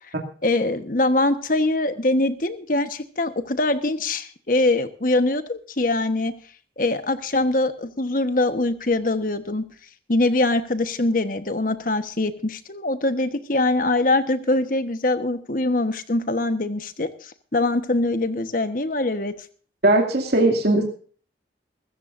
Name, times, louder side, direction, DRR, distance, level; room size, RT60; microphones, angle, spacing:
voice 1, 0.4-6.3 6.8-9.6 10.1-19.3, left 2 dB, 45° left, 10 dB, 1.2 m, -23 dB
voice 2, 19.8-20.8, right 2 dB, 60° right, 1 dB, 2.5 m, -18 dB
23.0 x 14.0 x 2.6 m, 0.43 s
head